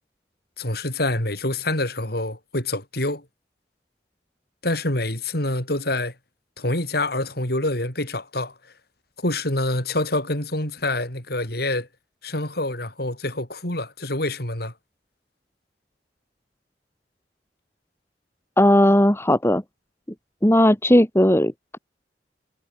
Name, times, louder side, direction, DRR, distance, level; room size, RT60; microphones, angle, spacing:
voice 1, 0.6-3.3 4.6-6.1 6.6-8.7 9.2-11.9 12.2-14.7, left 2 dB, 60° left, 7.4 m, -26 dB
voice 2, 18.6-19.6 20.4-21.8, left 1 dB, 15° left, 2.6 m, -17 dB
head